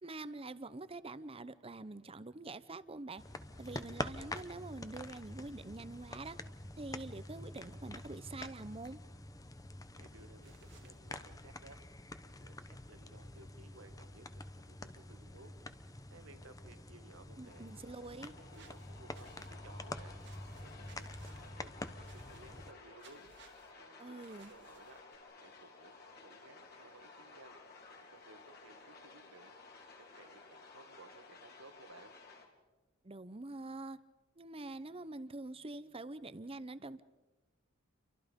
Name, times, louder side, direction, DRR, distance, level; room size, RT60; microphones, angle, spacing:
voice 1, 0.0-3.2 3.6-6.4 6.8-9.0 17.4-18.3 24.0-24.5 33.0-34.0 34.4-37.0, right 2 dB, 25° right, 15 dB, 0.8 m, -45 dB
sound 1, 3.2-22.7, left 2 dB, 15° left, 0.9 m, -47 dB
voice 2, 10.0-20.1 20.6-23.3 23.8-27.6 28.0-32.2, right 2 dB, 70° right, 8 dB, 2.0 m, -59 dB
sound 2, 10.4-11.0 18.5-19.5 20.2-21.5 22.0-22.7 23.0-23.7 24.2-25.2, right 6 dB, 55° right, 2.1 m, -62 dB
sound 3, 17.4-32.5, left 4 dB, 50° left, 3.5 m, -56 dB
29.0 x 24.0 x 5.3 m, 1.2 s
head